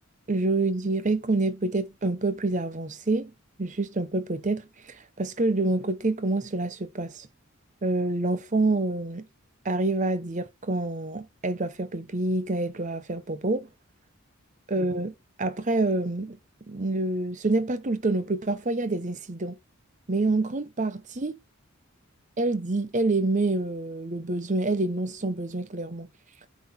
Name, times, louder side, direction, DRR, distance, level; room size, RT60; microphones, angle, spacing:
voice 1, 0.3-3.3 3.6-7.3 7.8-9.3 9.6-13.7 14.7-16.4 16.7-19.6 20.1-21.4 22.4-26.1, right 2 dB, 35° right, 0.8 m, -27 dB
9.5 x 4.2 x 4.2 m
head